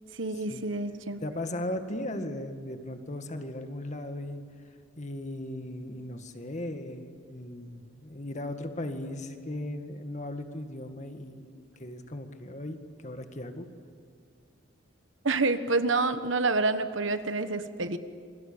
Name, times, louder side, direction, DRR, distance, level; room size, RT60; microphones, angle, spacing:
voice 1, 0.2-1.2 15.2-18.0, right 3 dB, 75° right, 10 dB, 1.4 m, -28 dB
voice 2, 1.2-4.4 5.0-13.7, left 1 dB, 35° left, 7 dB, 1.9 m, -37 dB
28.0 x 23.0 x 8.8 m, 2.3 s
head